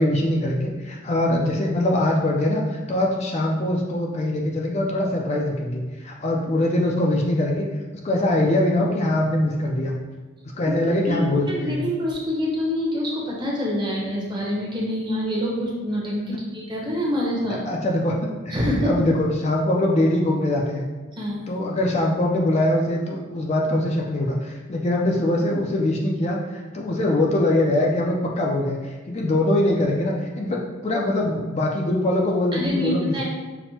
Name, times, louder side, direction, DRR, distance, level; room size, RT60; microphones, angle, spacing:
voice 1, 0.0-7.7 8.0-9.9 10.6-11.8 16.3-16.4 17.5-18.1 18.5-18.6 18.8-20.9 21.5-33.2, left 1 dB, 35° left, -1 dB, 0.4 m, -22 dB
voice 2, 11.5-17.6 18.5-18.9 21.1-21.4 32.5-33.2, left 1 dB, 25° right, -4 dB, 0.8 m, -26 dB
5.8 x 2.1 x 2.8 m, 1.3 s
head